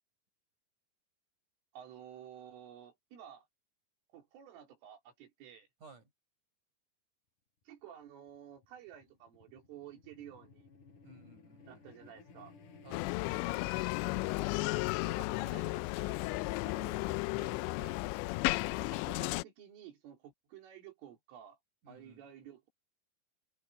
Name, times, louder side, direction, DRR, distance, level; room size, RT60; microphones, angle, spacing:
voice 1, 1.7-3.5 4.1-5.7 7.7-10.7 11.6-12.5 15.0-17.7 18.7-21.6 21.9-22.7, right 10 dB, 80° right, 6.1 m, -52 dB
voice 2, 5.8-6.1 11.0-11.8 12.8-13.1 17.8-18.1 21.8-22.2, right 3 dB, 40° right, 6.8 m, -56 dB
sound 1, 8.0-15.3, left 4 dB, 40° left, 6.4 m, -57 dB
Bicycle, 12.9-19.4, left 23 dB, 90° left, 2.5 m, -34 dB
omnidirectional pair, 5.6 m